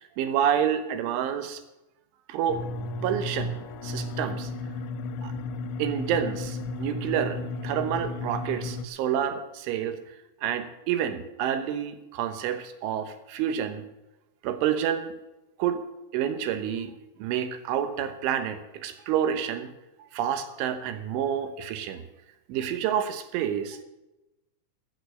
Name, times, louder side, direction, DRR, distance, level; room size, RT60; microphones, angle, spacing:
voice 1, 0.0-1.6 2.3-2.6 3.0-4.5 5.2-5.3 5.8-10.0 10.4-13.9 14.4-15.1 15.6-15.8 16.1-16.9 17.2-19.7 20.1-22.0 22.5-23.8, right 9 dB, 90° right, 9 dB, 3.6 m, -28 dB
sound 1, 2.5-8.9, left 2 dB, 90° left, 3.0 m, -34 dB
15.0 x 8.8 x 6.3 m, 0.98 s
omnidirectional pair, 5.3 m